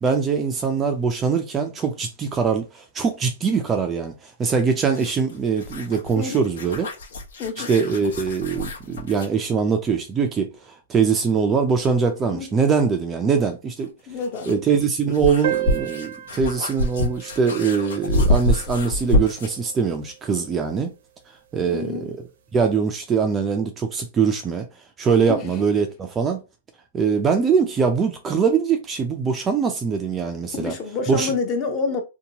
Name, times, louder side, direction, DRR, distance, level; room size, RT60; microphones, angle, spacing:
voice 1, 0.0-6.9 7.7-13.9 14.5-20.9 21.5-22.2 22.5-24.7 25.0-26.4 26.9-30.7 31.1-31.3, right 5 dB, 15° right, 0.3 m, -22 dB
sound 1, 4.8-9.4 11.7-11.8 13.8-19.6, left 1 dB, 70° left, 1.0 m, -26 dB
voice 2, 6.2-6.5 7.4-7.7 12.3-12.5 14.1-14.6 21.7-22.1 25.3-25.5 30.6-32.0, left 4 dB, 30° left, 0.7 m, -28 dB
sound 2, 15.4-20.4, right 14 dB, 65° right, 0.6 m, -34 dB
2.7 x 2.2 x 2.8 m
hypercardioid pair, 145°, 0 cm